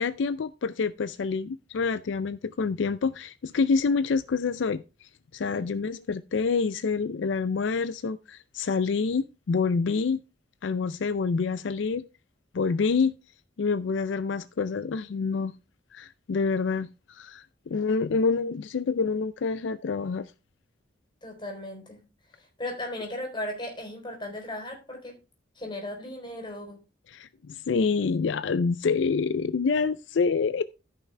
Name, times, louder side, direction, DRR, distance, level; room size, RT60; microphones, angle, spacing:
voice 1, 0.0-10.2 10.6-12.0 12.5-13.1 13.6-15.5 15.9-20.3 27.1-30.6, left 4 dB, 75° left, 0.4 m, -27 dB
voice 2, 21.2-22.0 22.4-25.2 25.6-26.8, left 1 dB, 25° left, 3.6 m, -36 dB
14.0 x 5.9 x 3.3 m
head